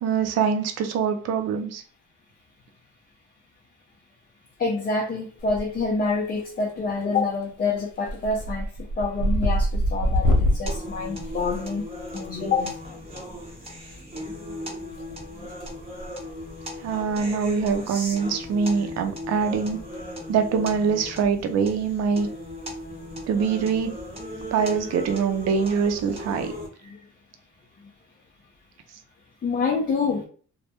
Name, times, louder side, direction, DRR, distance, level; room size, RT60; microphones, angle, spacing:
voice 1, 0.0-1.8 16.8-19.8 20.3-22.3 23.3-24.0 24.5-26.5, right 6 dB, 60° right, 0.5 m, -24 dB
voice 2, 4.6-11.8 12.1-12.7 15.4-15.5 26.8-27.0 29.4-30.2, left 4 dB, 30° left, 0.5 m, -27 dB
sound 1, 5.4-6.0 6.3-6.8 7.2-7.4 7.8-12.2 13.5-13.7 14.9-15.7 16.0-16.2 16.7-16.8 17.1-17.2 17.6-17.8 18.0-18.1 19.7-19.9, equal, 85° left, 0.7 m, -26 dB
sound 2, 10.7-26.7, left 1 dB, 20° right, 0.9 m, -37 dB
2.1 x 2.1 x 2.8 m
cardioid pair, 90°, 30 cm